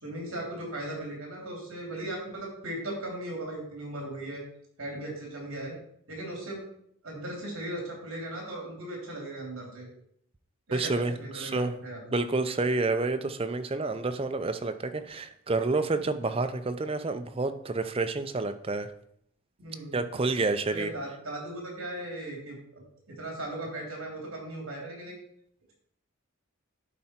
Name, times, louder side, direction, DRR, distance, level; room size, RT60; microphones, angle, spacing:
voice 1, 0.0-4.4 4.8-5.8 6.1-6.6 7.0-9.9 10.7-12.0 19.6-20.0 20.7-25.1, right 1 dB, 65° right, -1 dB, 2.8 m, -37 dB
voice 2, 10.7-11.8 12.1-18.9 19.9-20.9, right 3 dB, 25° right, 8 dB, 0.5 m, -29 dB
11.0 x 4.4 x 4.4 m, 0.70 s
head